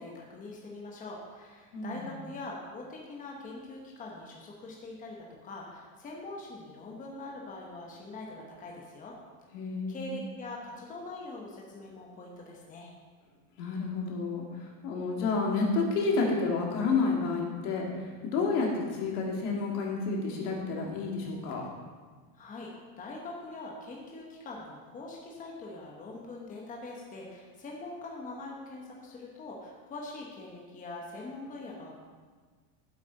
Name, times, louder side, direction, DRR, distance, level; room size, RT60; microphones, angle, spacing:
voice 1, 0.0-5.2 5.4-9.1 9.9-12.9 22.4-22.7 23.0-32.0, left 2 dB, 15° left, -2 dB, 1.0 m, -43 dB
voice 2, 1.7-2.0 9.5-10.1 13.6-21.6, left 4 dB, 75° left, -1 dB, 2.2 m, -30 dB
8.0 x 7.7 x 4.0 m, 1.5 s
cardioid pair, 160°, 46 cm